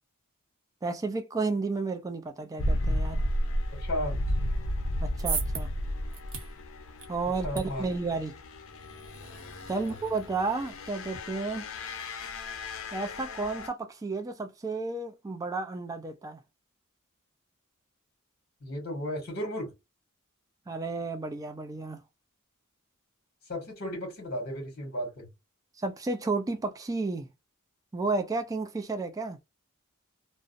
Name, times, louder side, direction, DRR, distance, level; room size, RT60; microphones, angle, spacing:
voice 1, 0.8-3.2 5.0-5.7 7.1-8.3 9.7-11.7 12.9-16.4 20.7-22.0 25.8-27.3 27.9-29.4, right 3 dB, 15° right, 0.3 m, -32 dB
sound 1, 2.6-13.7, left 1 dB, 65° left, 0.5 m, -33 dB
voice 2, 3.7-4.2 7.4-7.8 9.7-9.9 18.6-19.7 23.5-25.3, equal, 50° left, 1.2 m, -34 dB
sound 2, 4.8-11.2, right 5 dB, 65° right, 0.8 m, -41 dB
2.4 x 2.1 x 2.5 m
head